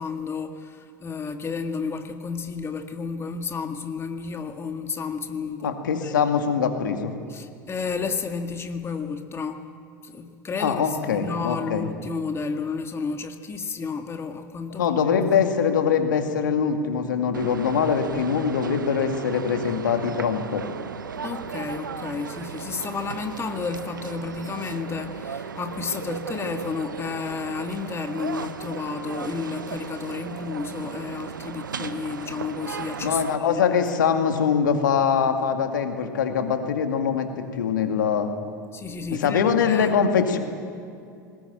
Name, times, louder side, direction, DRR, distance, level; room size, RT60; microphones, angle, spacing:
voice 1, 0.0-6.1 7.3-9.7 10.0-14.9 21.2-33.6 34.0-34.1 38.7-40.0, left 5 dB, 25° left, 6 dB, 1.8 m, -32 dB
voice 2, 5.6-7.1 10.6-11.8 14.7-20.7 33.0-38.3 39.2-40.4, left 7 dB, 75° left, 5 dB, 2.2 m, -23 dB
sound 1, 17.3-33.4, right 6 dB, 85° right, 0.9 m, -36 dB
20.5 x 20.0 x 9.1 m, 2.5 s
hypercardioid pair, 80°, 10 cm